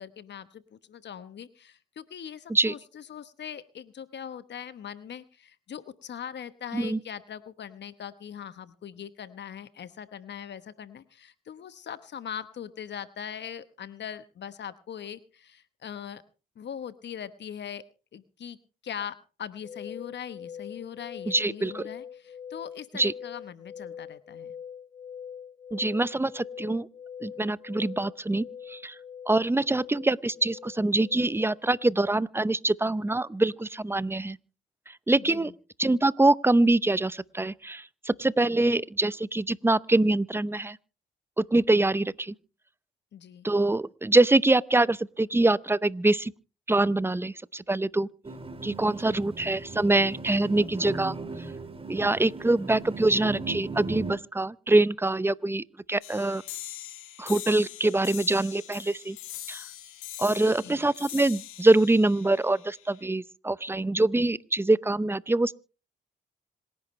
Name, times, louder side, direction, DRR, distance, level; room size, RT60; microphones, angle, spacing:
voice 1, 0.0-16.2 16.6-17.8 18.1-18.6 18.8-24.5 35.2-35.5 43.1-43.5 48.8-49.3 60.3-60.8, left 8 dB, 60° left, 1.1 m, -41 dB
sound 1, 19.6-31.9, left 8 dB, 35° left, 3.9 m, -43 dB
voice 2, 21.3-21.8 22.9-23.1 25.7-26.9 27.2-29.0 29.3-34.4 34.9-35.5 35.8-40.8 41.4-42.3 43.4-46.3 46.7-48.1 48.6-51.2 51.9-56.4 57.2-59.2 59.5-59.6 60.2-65.5, right 2 dB, 10° right, 0.7 m, -24 dB
sound 2, 48.2-54.1, right 3 dB, 25° right, 2.4 m, -38 dB
sound 3, 56.0-63.0, left 13 dB, 85° left, 2.0 m, -42 dB
26.5 x 11.0 x 3.2 m
supercardioid pair, 55°, 20 cm